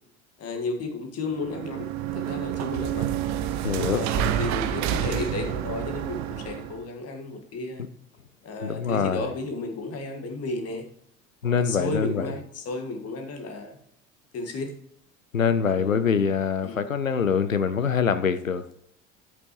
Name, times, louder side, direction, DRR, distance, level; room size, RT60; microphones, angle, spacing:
voice 1, 0.4-1.9 2.2-3.1 3.8-7.8 8.4-10.8 11.4-13.8 14.3-14.7 15.7-16.2 16.6-16.8, left 3 dB, 40° left, 4 dB, 1.7 m, -33 dB
sound 1, 1.3-6.8, right 10 dB, 45° right, 0.7 m, -29 dB
voice 2, 3.6-4.0 8.6-9.3 11.4-12.3 15.3-18.7, left 6 dB, 90° left, 12 dB, 0.6 m, -24 dB
10.5 x 8.3 x 3.1 m, 0.75 s
figure-of-eight pair, 65°, 39 cm